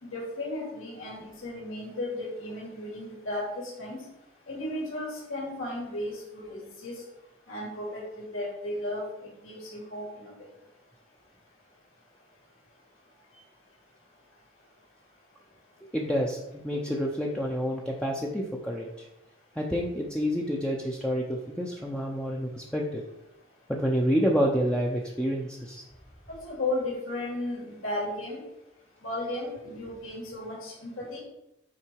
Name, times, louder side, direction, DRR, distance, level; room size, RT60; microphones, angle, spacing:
voice 1, 0.0-3.5 3.8-4.0 4.5-7.0 7.5-10.3 26.3-28.4 29.0-31.2, left 1 dB, 75° left, -4 dB, 2.8 m, -35 dB
voice 2, 15.9-18.9 19.6-23.0 23.7-25.8, equal, 5° left, -2 dB, 0.7 m, -28 dB
8.8 x 4.6 x 4.7 m, 0.89 s
head